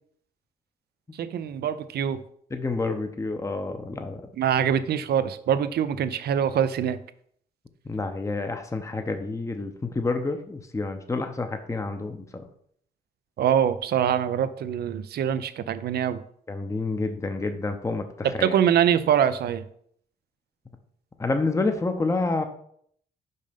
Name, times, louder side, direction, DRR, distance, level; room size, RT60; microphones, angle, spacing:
voice 1, 1.2-2.2 4.4-7.0 13.4-16.2 18.4-19.6, right 9 dB, 75° right, 13 dB, 0.6 m, -24 dB
voice 2, 2.5-4.2 7.9-12.4 16.5-18.6 21.2-22.4, left 3 dB, 20° left, 6 dB, 0.8 m, -28 dB
5.5 x 5.3 x 5.2 m, 0.65 s
cardioid pair, 80°, 17 cm